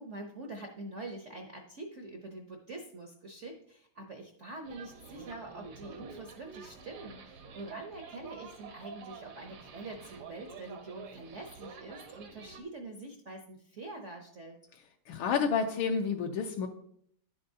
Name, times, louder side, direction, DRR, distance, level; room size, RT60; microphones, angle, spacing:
voice 1, 0.0-14.6, right 2 dB, 65° right, 3 dB, 0.7 m, -45 dB
sound 1, 4.6-12.6, right 5 dB, 85° right, 2.0 m, -49 dB
voice 2, 15.1-16.7, left 6 dB, 80° left, 3 dB, 1.5 m, -29 dB
10.5 x 7.8 x 2.7 m, 0.66 s
omnidirectional pair, 2.3 m